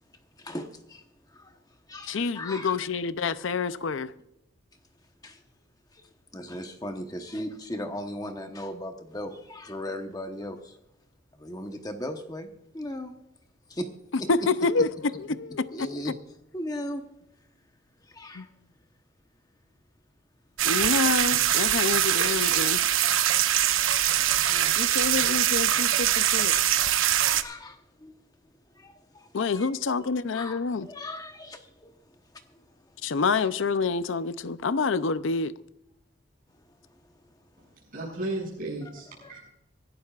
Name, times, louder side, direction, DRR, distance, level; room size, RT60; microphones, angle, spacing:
voice 1, 0.4-1.6 1.9-2.8 5.2-5.4 5.9-10.8 11.3-12.5 12.7-13.1 13.7-13.9 14.2-14.3 15.7-16.2 16.5-17.1 18.0-18.5 23.6-23.7 24.4-24.7 26.9-28.1 28.7-29.7 30.0-33.0 36.6-36.7 36.9-37.0 37.3-37.4 39.2-39.5, left 1 dB, 20° left, 1.0 m, -38 dB
voice 2, 2.1-4.1 14.3-16.0 18.3-18.5 20.6-22.8 24.8-26.5 29.3-30.9 33.0-35.5, left 4 dB, 65° left, 0.5 m, -27 dB
sound 1, 20.6-27.4, right 11 dB, 75° right, 0.8 m, -23 dB
voice 3, 37.6-39.5, right 2 dB, 40° right, 6.5 m, -35 dB
25.0 x 12.0 x 2.4 m
head